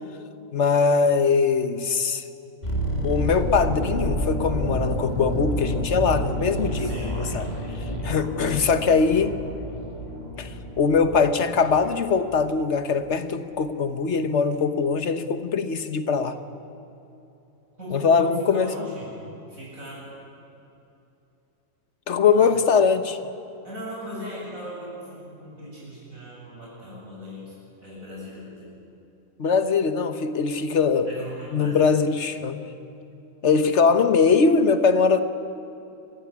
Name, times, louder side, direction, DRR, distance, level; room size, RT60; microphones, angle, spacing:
voice 1, 0.5-2.2 3.0-7.5 8.0-9.4 10.4-16.4 17.9-18.7 22.1-23.2 29.4-31.1 31.5-32.6 33.4-35.2, left 5 dB, 55° left, 9 dB, 1.4 m, -21 dB
sound 1, 2.6-12.6 12.9-13.1, equal, 30° left, 3.2 m, -29 dB
voice 2, 6.8-7.3 17.8-19.1 19.5-20.1 22.3-22.6 23.6-28.7 31.1-31.9, equal, 80° right, -5 dB, 8.3 m, -38 dB
27.5 x 15.5 x 9.7 m, 2.8 s
omnidirectional pair, 1.4 m